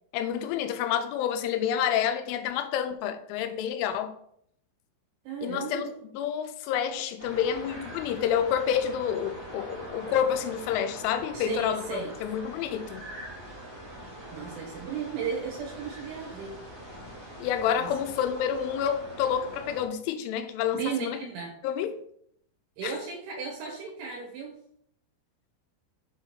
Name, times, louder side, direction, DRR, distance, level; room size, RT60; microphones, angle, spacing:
voice 1, 0.1-4.1 5.4-5.9 6.1-13.1 17.4-21.2 21.6-22.0 22.8-22.9, left 9 dB, 85° left, 3.2 m, -29 dB
voice 2, 5.3-5.9 11.3-12.1 14.3-16.6 17.8-17.9 20.7-21.5 22.8-24.6, right 6 dB, 75° right, 3.6 m, -35 dB
sound 1, 7.2-19.8, right 1 dB, 40° right, 0.8 m, -43 dB
7.6 x 3.9 x 6.0 m
omnidirectional pair, 5.5 m